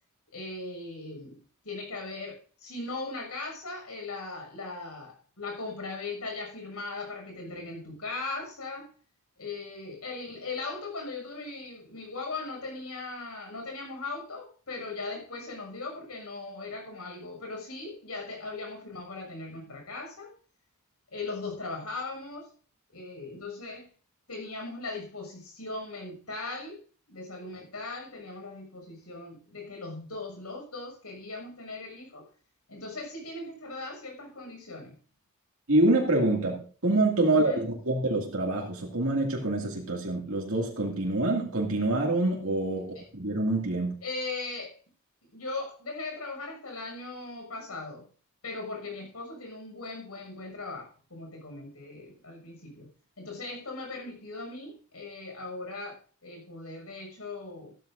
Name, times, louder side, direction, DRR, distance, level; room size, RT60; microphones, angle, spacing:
voice 1, 0.3-8.9 9.4-20.3 21.1-22.5 22.9-23.9 24.3-26.8 27.1-32.3 32.7-35.0 37.2-37.6 42.9-43.1 44.0-44.8 45.3-48.1 48.4-52.9 53.2-57.7, left 3 dB, 85° left, 6.3 m, -39 dB
voice 2, 35.7-44.0, right 2 dB, 70° right, 2.3 m, -26 dB
15.0 x 13.0 x 2.7 m
head